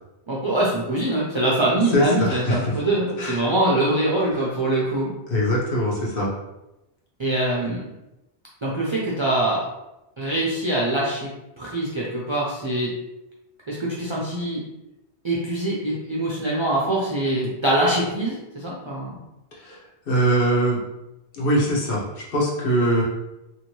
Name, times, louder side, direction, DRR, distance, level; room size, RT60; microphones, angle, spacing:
voice 1, 0.3-5.1 7.2-7.9 8.6-9.7 10.2-12.9 13.7-14.6 15.2-19.2, right 1 dB, 40° right, -5 dB, 0.4 m, -23 dB
voice 2, 1.9-2.7 3.2-3.4 5.3-6.3 19.6-19.8 20.1-20.8 21.3-23.0, equal, 60° left, -4 dB, 1.0 m, -22 dB
2.8 x 2.7 x 3.0 m, 0.94 s
omnidirectional pair, 1.1 m